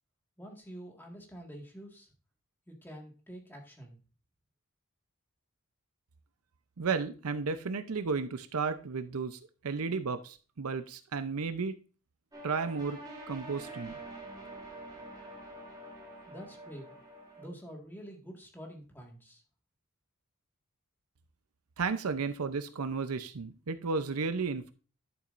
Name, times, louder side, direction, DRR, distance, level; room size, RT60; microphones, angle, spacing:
voice 1, 0.4-2.1 2.7-4.0 16.2-16.9 17.4-19.4, equal, 10° left, 1 dB, 1.8 m, -47 dB
voice 2, 6.8-9.4 9.6-11.7 12.4-13.0 13.3-13.9 21.8-24.7, right 4 dB, 75° right, 10 dB, 0.7 m, -33 dB
sound 1, 12.3-17.4, right 2 dB, 20° right, 2.4 m, -46 dB
11.5 x 7.0 x 2.5 m, 0.36 s
head